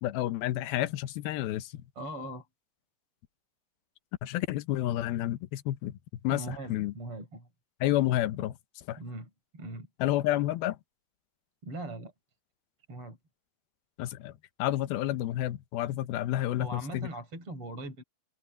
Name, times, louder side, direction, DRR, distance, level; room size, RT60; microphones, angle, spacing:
voice 1, 0.0-1.8 4.2-5.9 6.2-6.9 7.8-8.6 8.9-9.0 10.0-10.8 14.0-14.3 14.6-17.1, left 14 dB, 80° left, 2.8 m, -30 dB
voice 2, 2.0-2.5 6.3-7.5 9.0-9.9 11.6-12.1 12.9-13.2 16.6-18.0, right 1 dB, 35° right, 6.1 m, -40 dB
omnidirectional pair, 4.3 m